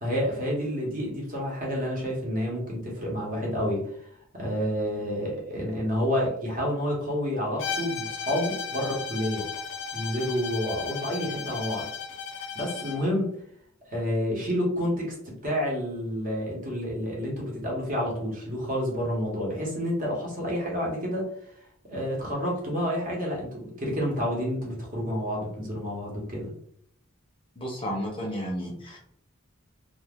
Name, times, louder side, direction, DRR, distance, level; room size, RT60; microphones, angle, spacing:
voice 1, 0.0-4.0 4.3-9.4 9.9-11.9 12.5-13.3 13.9-15.1 15.4-21.3 21.9-26.5, equal, 40° right, -3 dB, 1.1 m, -29 dB
Bowed string instrument, 7.6-13.1, left 6 dB, 60° left, 0.5 m, -35 dB
voice 2, 27.6-29.0, equal, 25° left, -1 dB, 0.7 m, -32 dB
2.4 x 2.4 x 3.5 m, 0.66 s
head